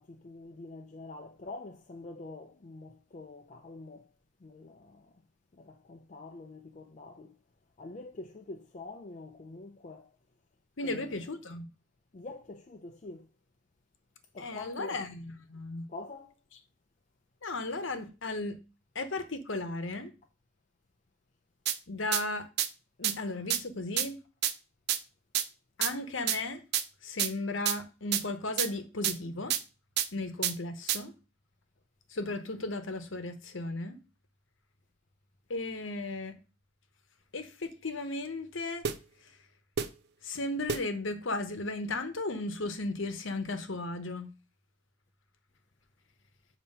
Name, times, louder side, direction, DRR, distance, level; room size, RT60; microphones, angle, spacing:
voice 1, 0.0-4.1 4.4-5.2 5.5-7.4 7.8-10.2 10.8-11.3 12.1-13.3 14.3-15.0 15.9-16.3, left 2 dB, 35° left, 0.4 m, -46 dB
voice 2, 10.8-11.7 14.4-15.9 17.4-18.5 18.9-20.1 21.9-22.5 23.0-24.2 25.8-26.6 27.0-29.5 30.1-31.1 32.1-34.0 35.5-36.3 37.3-38.8 40.2-44.3, left 2 dB, 60° left, 0.9 m, -35 dB
sound 1, 21.7-21.8 22.1-22.2 22.6-22.7 23.0-23.1 23.5-23.6 24.0-24.1 24.4-24.5 24.9-25.0 25.3-25.4 25.8-25.9 26.3-26.4 26.7-26.8 27.2-27.3 27.6-27.7 28.1-28.2 28.6-28.7 29.0-29.1 29.5-29.6 30.0-30.1 30.4-30.5 30.9-31.0 38.8-38.9 39.8-39.9 40.7-40.8, right 10 dB, 50° right, 0.5 m, -28 dB
7.1 x 2.9 x 5.4 m
head